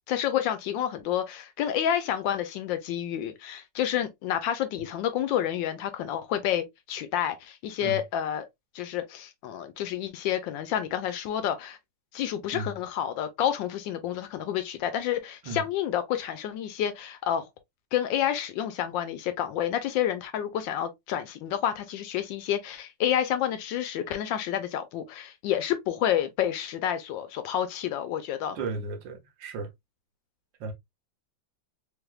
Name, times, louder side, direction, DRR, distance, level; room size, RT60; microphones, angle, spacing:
voice 1, 0.1-8.4 8.7-11.8 12.1-17.5 17.9-28.6, left 10 dB, 75° left, 1.2 m, -29 dB
voice 2, 28.5-29.7 30.6-30.7, right 3 dB, 70° right, 1.4 m, -34 dB
3.4 x 3.2 x 2.2 m
omnidirectional pair, 2.2 m